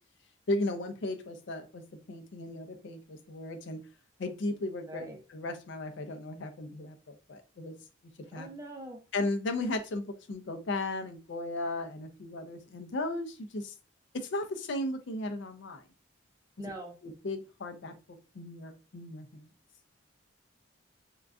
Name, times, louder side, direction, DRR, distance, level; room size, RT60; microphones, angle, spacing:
voice 1, 0.5-3.8 4.2-7.7 8.3-8.5 9.1-10.0 10.3-13.7 14.1-15.8 17.0-19.5, left 2 dB, 65° left, 0.5 m, -36 dB
voice 2, 4.9-5.2 8.4-9.0 16.6-17.0, right 1 dB, 15° right, 0.5 m, -43 dB
3.7 x 2.2 x 2.4 m
head